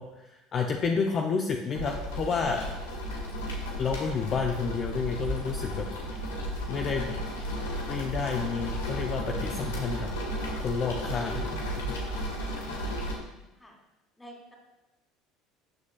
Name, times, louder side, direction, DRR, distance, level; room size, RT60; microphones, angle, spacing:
voice 1, 0.0-2.7 3.8-5.9 6.2-6.3 6.7-7.4 7.9-10.1 10.6-12.0, left 5 dB, 45° left, 2 dB, 0.8 m, -30 dB
sound 1, 1.7-13.1, equal, 85° left, 1.9 m, -34 dB
voice 2, 13.1-13.8 14.2-14.5, right 1 dB, 10° left, -1 dB, 2.8 m, -50 dB
12.5 x 7.4 x 2.4 m, 0.97 s
hypercardioid pair, 75°, 0 cm